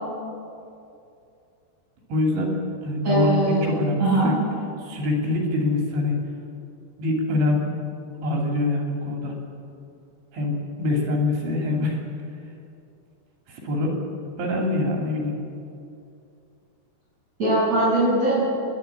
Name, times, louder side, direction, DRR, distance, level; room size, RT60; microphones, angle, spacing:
voice 1, 2.1-2.5 2.8-4.4 4.8-6.2 7.0-7.7 8.2-9.3 10.3-12.0 13.5-13.9 14.4-15.4, left 2 dB, 85° right, 0 dB, 5.2 m, -24 dB
voice 2, 3.0-3.7 4.0-4.3 17.4-18.4, right 1 dB, 40° right, -10 dB, 8.4 m, -20 dB
28.0 x 11.5 x 8.6 m, 2.5 s
omnidirectional pair, 4.9 m